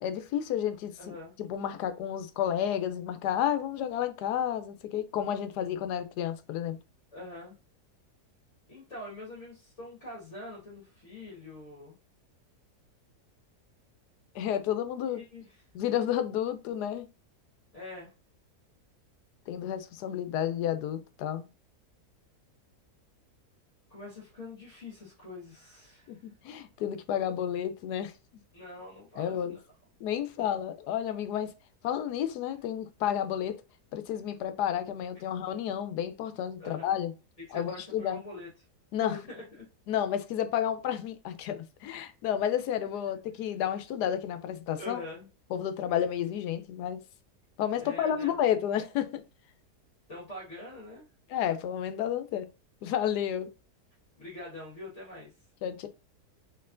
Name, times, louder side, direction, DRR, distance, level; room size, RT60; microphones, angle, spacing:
voice 1, 0.0-6.8 14.3-15.2 15.7-17.1 19.5-21.5 26.1-28.1 29.2-29.5 30.0-31.5 31.8-33.6 33.9-37.1 37.5-38.2 38.9-39.2 39.9-45.0 45.5-47.0 47.6-49.2 51.3-52.5 52.8-53.5 55.6-55.9, left 10 dB, 90° left, 1.2 m, -31 dB
voice 2, 1.0-1.4 7.1-7.6 8.7-12.0 15.1-15.6 17.7-18.1 23.9-26.2 28.5-29.6 30.4-30.5 34.2-34.3 35.3-35.4 36.6-36.9 37.5-38.5 39.1-39.7 43.1-43.2 44.8-45.3 47.8-48.4 50.1-51.1 54.2-55.3, left 2 dB, 50° left, 1.8 m, -44 dB
4.4 x 3.7 x 2.5 m
omnidirectional pair, 1.7 m